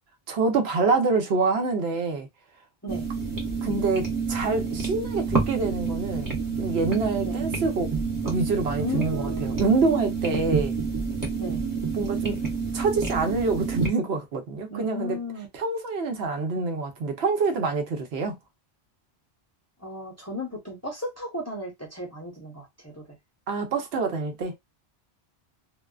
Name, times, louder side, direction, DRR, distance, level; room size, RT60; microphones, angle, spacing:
voice 1, 0.3-2.3 3.6-7.9 8.2-10.7 11.9-12.4 12.7-15.2 15.5-18.3 23.5-24.5, right 4 dB, 75° right, 0.9 m, -26 dB
sound 1, 2.9-13.9, right 5 dB, 20° right, 0.7 m, -29 dB
voice 2, 8.8-9.8 11.4-11.6 14.7-15.5 19.8-23.0, left 1 dB, 15° left, 0.6 m, -35 dB
2.5 x 2.3 x 2.3 m
omnidirectional pair, 1.1 m